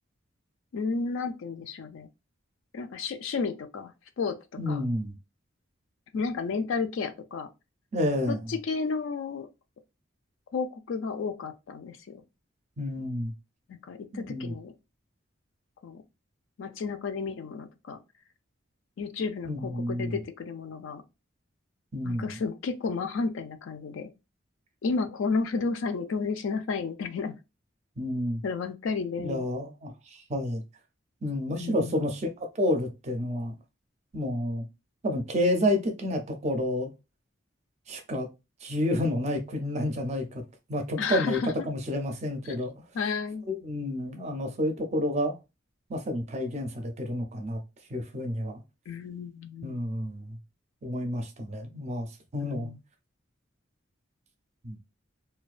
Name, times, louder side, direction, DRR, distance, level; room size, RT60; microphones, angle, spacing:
voice 1, 0.7-2.1 2.7-4.4 4.7-4.8 6.1-7.5 8.3-9.5 10.5-12.2 13.9-14.7 15.8-16.0 16.6-18.0 19.0-21.0 22.0-24.1 24.8-27.4 28.4-29.5 31.6-32.1 41.0-41.7 42.9-43.4 48.9-49.8 52.4-52.8, left 4 dB, 70° left, 0.4 m, -32 dB
voice 2, 4.6-5.2 7.9-8.5 12.8-13.3 14.1-14.5 19.4-20.2 21.9-22.4 28.0-28.4 29.2-30.6 31.2-33.6 34.1-34.7 35.0-36.9 37.9-38.3 38.6-40.4 40.7-42.7 43.5-45.4 45.9-47.6 47.9-48.6 49.6-50.4 50.8-52.7 54.6-54.8, left 1 dB, 35° right, 0.4 m, -30 dB
2.3 x 2.2 x 2.4 m
head